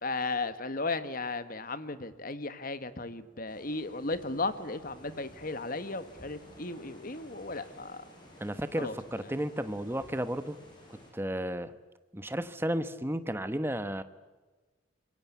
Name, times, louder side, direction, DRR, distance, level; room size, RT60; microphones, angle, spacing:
voice 1, 0.0-8.0 8.8-8.9, left 3 dB, 45° left, 12 dB, 1.5 m, -35 dB
sound 1, 3.5-11.1, equal, 20° left, 6.7 m, -54 dB
voice 2, 8.4-10.6 10.9-11.7 12.1-14.0, equal, 10° right, 11 dB, 1.1 m, -33 dB
26.0 x 22.5 x 8.4 m, 1.3 s
head